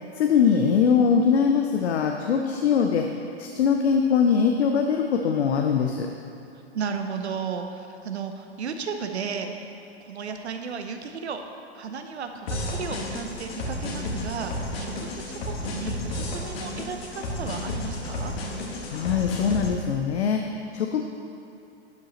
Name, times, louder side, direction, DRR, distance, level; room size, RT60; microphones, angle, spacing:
voice 1, 0.2-3.1 3.4-6.1 18.9-20.4 20.7-21.0, left 6 dB, 80° left, 3 dB, 0.7 m, -22 dB
voice 2, 6.7-9.5 10.0-11.4 11.7-18.3, right 6 dB, 90° right, 6 dB, 0.9 m, -34 dB
sound 1, 12.5-19.7, left 1 dB, 65° left, 1.9 m, -32 dB
11.5 x 8.8 x 3.1 m, 2.6 s
hypercardioid pair, 115°, 32 cm